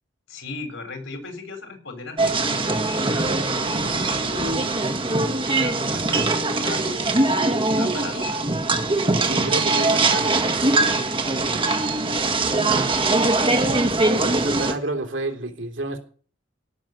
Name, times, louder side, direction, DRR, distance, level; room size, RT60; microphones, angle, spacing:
voice 1, 0.3-4.9 5.5-8.4, left 3 dB, 80° left, 4.1 m, -38 dB
sound 1, 2.2-14.7, right 2 dB, 25° right, 1.6 m, -22 dB
voice 2, 9.2-10.4 14.2-16.0, right 2 dB, 70° right, 3.2 m, -30 dB
16.5 x 6.3 x 9.2 m
head